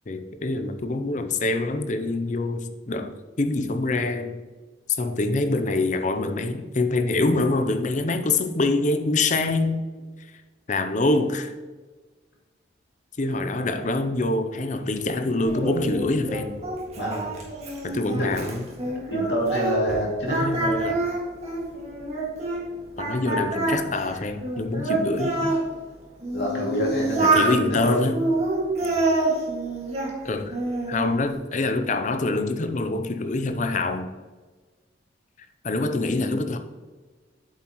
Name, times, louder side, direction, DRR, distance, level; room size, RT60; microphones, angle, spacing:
voice 1, 0.1-4.4 5.0-9.8 10.7-11.5 13.2-16.6 17.8-18.7 20.3-21.1 23.0-25.4 27.2-28.2 30.2-30.6 30.9-34.1 35.6-36.6, left 2 dB, 40° left, 8 dB, 0.6 m, -25 dB
Singing, 15.5-20.0 20.3-22.6 23.0-25.6 26.2-27.5 28.1-30.1 30.5-31.1, right 2 dB, 35° right, 2.0 m, -26 dB
voice 2, 17.0-17.3 18.2-18.3 19.1-20.4 23.2-23.4 26.3-28.0 28.8-28.9, equal, 70° left, -2 dB, 2.4 m, -27 dB
8.3 x 7.5 x 3.0 m, 1.4 s
head